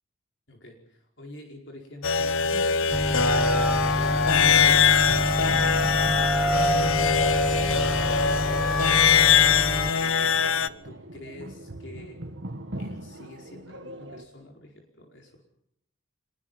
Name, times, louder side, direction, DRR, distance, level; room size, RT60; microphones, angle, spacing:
voice 1, 0.5-2.6 3.9-4.8 5.3-8.9 9.9-12.2 12.8-15.4, left 2 dB, 60° left, 1 dB, 4.8 m, -46 dB
sound 1, 2.0-10.7, left 6 dB, 85° left, 1.0 m, -22 dB
sound 2, 2.5-14.3, right 1 dB, 65° right, 1.9 m, -42 dB
sound 3, 2.9-9.9, equal, ahead, 1.1 m, -27 dB
26.0 x 22.5 x 5.6 m, 0.78 s
head